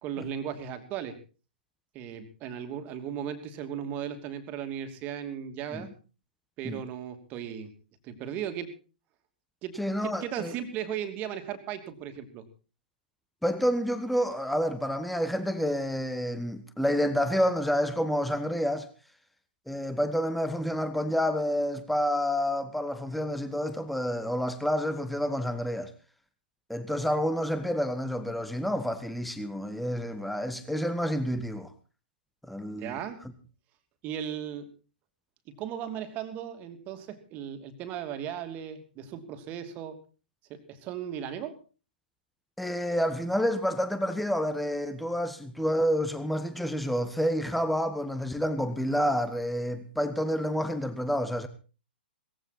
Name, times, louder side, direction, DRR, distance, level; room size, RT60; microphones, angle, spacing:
voice 1, 0.0-1.2 1.9-5.9 6.6-7.7 8.0-8.7 9.6-12.4 32.7-33.2 34.0-34.7 35.5-40.0 40.5-41.6, right 9 dB, 30° right, 2.7 m, -36 dB
voice 2, 9.8-10.5 13.4-18.9 19.7-25.9 26.7-31.7 32.4-33.0 42.6-51.5, equal, ahead, 1.3 m, -29 dB
19.0 x 15.5 x 4.2 m
figure-of-eight pair, 115°, 6 cm